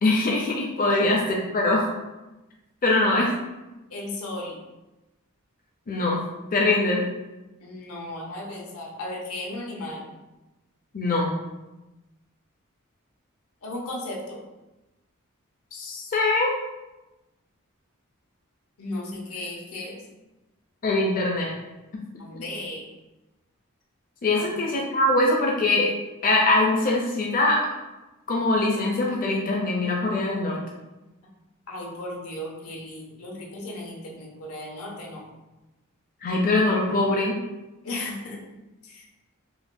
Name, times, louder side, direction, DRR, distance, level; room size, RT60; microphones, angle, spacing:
voice 1, 0.0-1.9 2.8-3.3 5.9-6.2 6.5-7.0 10.9-11.3 15.7-16.6 20.8-21.5 22.3-22.4 24.2-25.9 26.2-27.7 28.3-30.6 36.2-37.4, left 2 dB, 40° left, -2 dB, 0.5 m, -22 dB
voice 2, 3.9-4.6 7.6-10.1 13.6-14.4 18.8-20.0 22.2-22.9 24.3-24.5 31.7-35.3 37.8-38.4 38.8-39.2, left 1 dB, 85° left, -2 dB, 0.8 m, -35 dB
4.8 x 2.1 x 2.5 m, 1.0 s
head